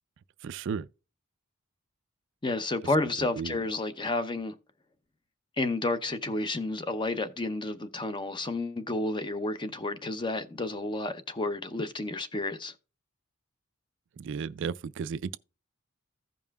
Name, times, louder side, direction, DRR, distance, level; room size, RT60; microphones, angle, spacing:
voice 1, 0.4-0.9 3.2-3.6 14.2-15.4, right 6 dB, 60° right, 0.3 m, -34 dB
voice 2, 2.4-4.5 5.6-12.7, left 2 dB, 20° left, 0.6 m, -31 dB
15.5 x 5.4 x 2.3 m
head